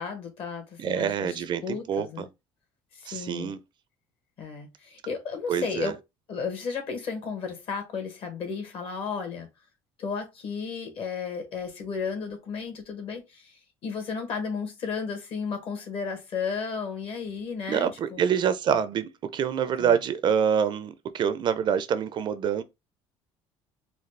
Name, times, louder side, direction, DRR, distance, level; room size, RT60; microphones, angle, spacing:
voice 1, 0.0-2.2 2.9-3.5 4.4-5.9 6.3-9.5 10.0-18.2 19.8-19.9, left 5 dB, 55° left, 1.4 m, -34 dB
voice 2, 0.8-2.3 3.1-3.6 5.5-5.9 17.7-22.6, right 8 dB, 45° right, 0.4 m, -26 dB
4.1 x 2.3 x 3.2 m
cardioid pair, 135°, 11 cm